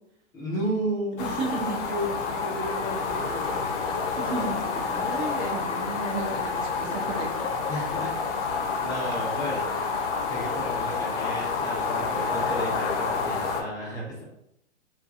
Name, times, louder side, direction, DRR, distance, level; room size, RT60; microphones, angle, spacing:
voice 1, 0.3-3.7 7.7-9.7 10.3-14.2, equal, 10° left, -6 dB, 0.6 m, -33 dB
sound 1, 1.2-13.6, left 4 dB, 65° left, 0.6 m, -29 dB
voice 2, 1.2-1.9 4.2-7.5, right 3 dB, 60° right, -1 dB, 0.9 m, -33 dB
2.6 x 2.3 x 2.4 m, 0.78 s
hypercardioid pair, 135°, 38 cm